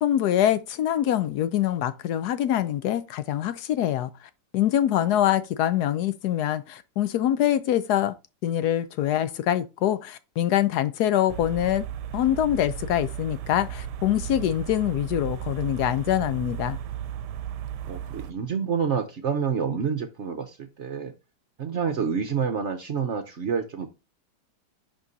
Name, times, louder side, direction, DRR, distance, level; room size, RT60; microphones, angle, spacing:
voice 1, 0.0-4.1 4.5-8.1 8.4-11.9 12.1-16.8, left 11 dB, 75° left, 1.1 m, -24 dB
sound 1, 11.3-18.3, right 10 dB, 75° right, 1.1 m, -35 dB
voice 2, 17.9-21.1 21.6-23.9, right 6 dB, 55° right, 0.8 m, -28 dB
10.5 x 3.8 x 2.6 m
omnidirectional pair, 1.9 m